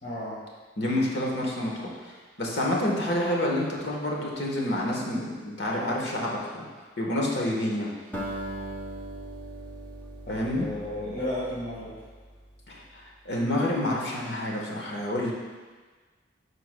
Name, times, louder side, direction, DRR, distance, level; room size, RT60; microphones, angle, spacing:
voice 1, 0.0-0.4 10.2-11.9, left 1 dB, 50° left, -11 dB, 1.6 m, -33 dB
voice 2, 0.8-6.6 7.0-7.9 10.3-10.7 12.7-12.8 13.2-15.3, left 1 dB, 70° left, -2 dB, 1.2 m, -28 dB
Acoustic guitar, 8.1-12.6, right 1 dB, 10° left, 0.7 m, -39 dB
9.7 x 4.8 x 2.2 m, 1.4 s
head